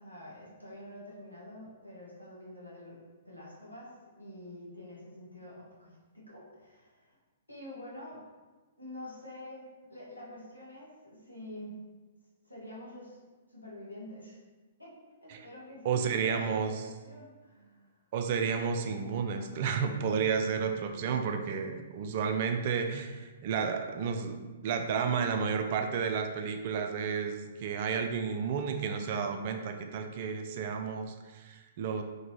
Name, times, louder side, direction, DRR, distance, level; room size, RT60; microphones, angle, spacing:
voice 1, 0.0-3.0 3.2-7.1 7.5-8.4 8.8-11.8 12.4-13.2 13.5-14.4 14.8-14.9 15.2-17.9, left 1 dB, 90° left, -6 dB, 1.2 m, -47 dB
voice 2, 15.8-16.8 18.1-32.0, right 6 dB, 40° right, 5 dB, 0.3 m, -32 dB
3.6 x 2.9 x 2.8 m, 1.3 s
figure-of-eight pair, 115°, 0 cm